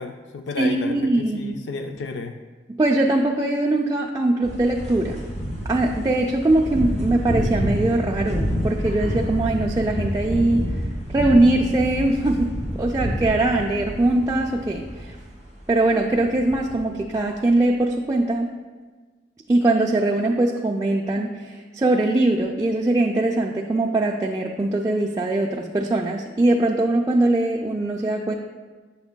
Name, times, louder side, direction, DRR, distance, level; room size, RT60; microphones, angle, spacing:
voice 1, 0.0-2.4, left 4 dB, 85° left, 6 dB, 0.3 m, -32 dB
voice 2, 0.6-1.6 2.7-5.2 5.7-10.7 11.1-15.2 15.7-18.5 19.5-28.3, right 2 dB, 20° right, -1 dB, 0.3 m, -21 dB
sound 1, 4.4-15.8 16.1-17.0, equal, 45° left, 2.0 m, -28 dB
8.0 x 6.8 x 2.2 m, 1.4 s
head